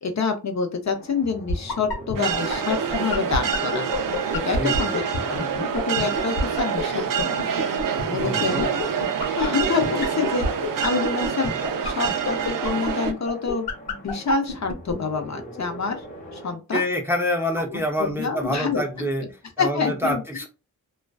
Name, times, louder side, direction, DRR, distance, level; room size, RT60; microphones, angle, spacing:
voice 1, 0.0-3.9 4.3-7.4 8.1-8.7 9.4-10.5 10.8-16.0 16.3-16.8 17.7-19.1 19.6-20.2, left 5 dB, 50° left, 5 dB, 0.6 m, -27 dB
sound 1, 0.8-16.5, right 2 dB, 20° left, 1.0 m, -39 dB
sound 2, 1.5-14.9, left 4 dB, 85° left, 1.1 m, -28 dB
sound 3, 2.1-13.1, right 7 dB, 60° right, 0.5 m, -27 dB
voice 2, 4.6-4.9 8.1-8.7 16.7-19.2 19.6-20.5, equal, 5° right, 2 dB, 0.5 m, -26 dB
2.3 x 2.3 x 2.3 m, 0.29 s
cardioid pair, 65°, 37 cm